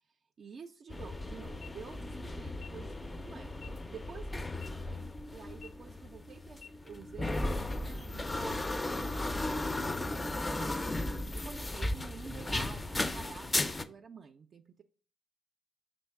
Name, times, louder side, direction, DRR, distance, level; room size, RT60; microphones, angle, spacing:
voice 1, 0.4-3.5 3.9-11.0 11.4-14.8, right 6 dB, 55° right, 5 dB, 0.3 m, -50 dB
sound 1, 0.9-13.8, left 2 dB, 25° left, 0.3 m, -36 dB
sound 2, 1.5-1.7 2.5-2.7 3.5-3.7 4.5-4.7 5.5-5.7 6.5-6.7, left 8 dB, 80° left, 0.5 m, -51 dB
5.4 x 2.6 x 3.5 m, 0.40 s
supercardioid pair, 60°, 0 cm